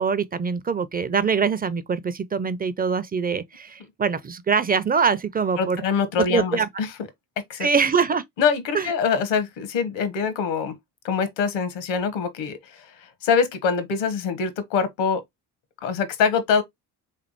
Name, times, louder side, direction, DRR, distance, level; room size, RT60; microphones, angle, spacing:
voice 1, 0.0-5.8 6.3-6.7 7.6-8.2 8.7-8.9, right 5 dB, 20° right, 0.5 m, -23 dB
voice 2, 5.6-6.9 7.5-7.7 8.4-10.8 11.0-15.2 15.8-16.6, left 6 dB, 65° left, 1.1 m, -24 dB
3.6 x 3.3 x 2.9 m
hypercardioid pair, 50°, 47 cm